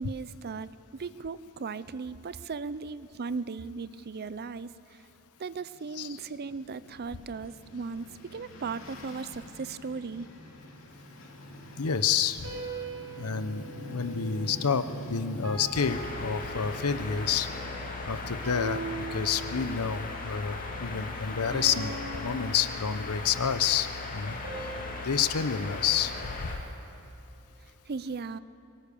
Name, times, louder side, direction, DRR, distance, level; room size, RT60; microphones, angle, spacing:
voice 1, 0.0-5.0 5.4-10.3 27.9-28.4, right 4 dB, 45° right, 16 dB, 0.5 m, -37 dB
sound 1, 5.5-19.5, left 1 dB, 65° left, 3.3 m, -46 dB
voice 2, 11.8-12.5 13.2-17.5 18.1-18.8 19.1-21.9 22.2-23.9 24.1-24.4 25.0-26.5, left 7 dB, 85° left, 13 dB, 0.8 m, -29 dB
sound 2, 12.4-14.9 15.4-17.2 18.4-20.0 21.4-23.3 24.4-26.8, right 3 dB, 70° right, 7.4 m, -41 dB
sound 3, 15.7-26.6, left 3 dB, 40° left, 2.2 m, -38 dB
23.0 x 18.5 x 6.9 m, 2.7 s
head